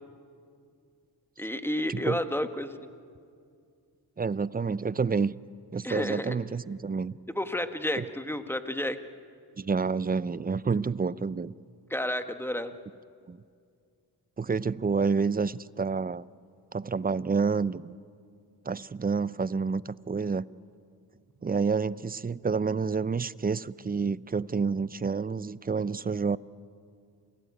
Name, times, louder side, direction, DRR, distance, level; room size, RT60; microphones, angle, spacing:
voice 1, 1.4-2.7 5.8-6.4 7.3-9.0 11.9-12.7, left 1 dB, 5° left, 8 dB, 1.5 m, -31 dB
voice 2, 1.9-2.2 4.2-5.3 5.7-7.1 8.0-8.1 9.6-11.5 13.3-13.4 14.4-16.2 16.7-18.0 18.6-20.4 21.4-26.4, right 5 dB, 20° right, 19 dB, 0.5 m, -29 dB
28.0 x 17.5 x 9.4 m, 2.3 s
cardioid pair, 65°, 44 cm